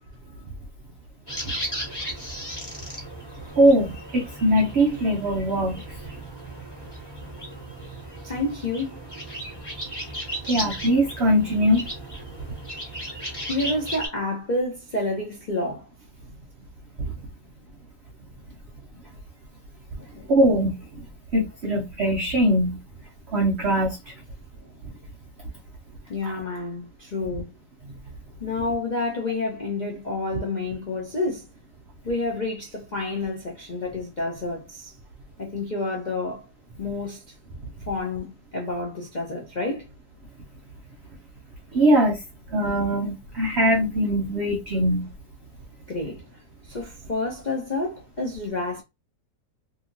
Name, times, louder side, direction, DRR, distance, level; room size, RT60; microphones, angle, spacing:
sound 1, 1.3-14.1, equal, 15° left, 1.2 m, -36 dB
voice 1, 3.6-5.8 10.5-11.9 17.0-17.1 20.3-20.8 21.3-22.8 23.3-24.1 26.2-26.3 41.7-42.2 42.5-45.1, equal, 85° right, 0.5 m, -21 dB
voice 2, 8.2-9.0 13.5-15.8 20.0-20.3 26.1-27.5 28.4-31.5 32.0-34.9 35.4-36.4 36.8-37.2 37.9-39.9 45.9-46.2 46.7-48.8, left 2 dB, 70° left, 0.4 m, -29 dB
2.8 x 2.7 x 2.5 m
omnidirectional pair, 1.8 m